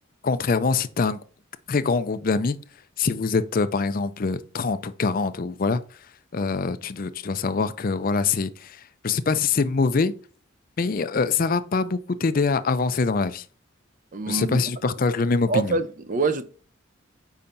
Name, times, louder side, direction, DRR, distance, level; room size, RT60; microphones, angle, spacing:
voice 1, 0.2-1.2 1.7-2.6 3.0-5.8 6.3-10.1 10.8-13.4 14.3-15.8, left 4 dB, 45° left, 0.4 m, -24 dB
voice 2, 14.1-14.6 15.5-16.4, right 4 dB, 40° right, 0.5 m, -25 dB
7.0 x 5.6 x 2.6 m
head